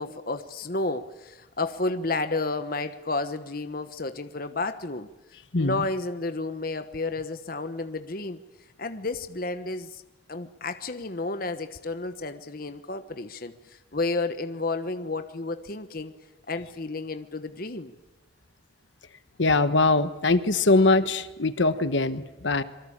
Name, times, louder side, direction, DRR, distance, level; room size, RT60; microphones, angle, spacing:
voice 1, 0.0-5.1 5.6-8.4 8.8-10.0 10.3-16.1 16.5-17.9, left 3 dB, 50° left, 9 dB, 1.2 m, -31 dB
voice 2, 5.5-5.8 19.4-22.6, left 2 dB, 70° left, 12 dB, 1.3 m, -22 dB
26.5 x 23.5 x 8.9 m, 0.98 s
head